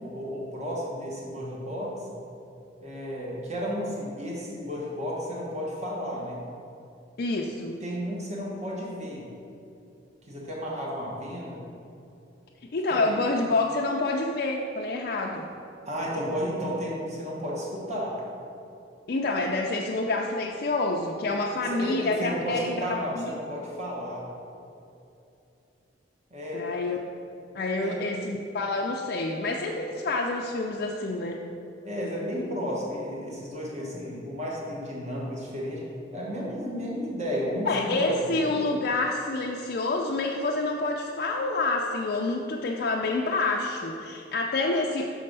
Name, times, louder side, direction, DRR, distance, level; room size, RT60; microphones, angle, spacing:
voice 1, 0.0-1.9 2.8-6.4 7.8-9.2 10.3-11.6 12.9-13.2 15.8-18.1 21.7-24.3 26.3-26.7 27.8-28.2 31.8-35.9 36.1-38.6, equal, 40° right, -4 dB, 1.3 m, -33 dB
voice 2, 7.2-7.8 12.7-15.5 19.1-23.3 26.5-27.0 27.5-31.4 37.7-45.1, left 2 dB, 50° left, -1 dB, 0.4 m, -28 dB
6.3 x 5.3 x 5.3 m, 2.7 s
head